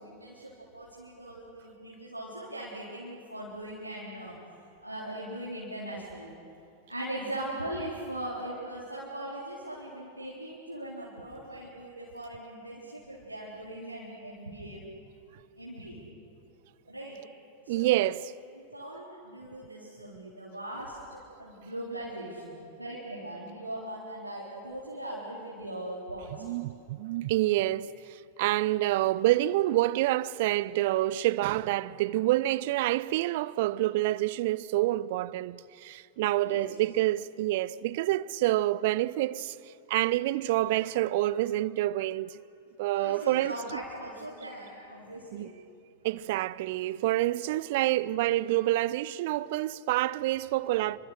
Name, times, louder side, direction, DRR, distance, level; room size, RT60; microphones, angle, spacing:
voice 1, 0.0-4.4 4.8-6.3 6.9-14.8 15.6-16.0 16.9-17.2 17.6-18.1 18.5-26.7 36.4-36.7 42.9-45.5, right 1 dB, 90° right, 4.0 m, -40 dB
voice 2, 17.7-18.3 26.4-39.6 39.9-42.4 42.8-43.5 45.3-45.5 46.0-51.0, right 16 dB, 50° right, 0.6 m, -27 dB
28.5 x 25.0 x 6.6 m
figure-of-eight pair, 90°, 0 cm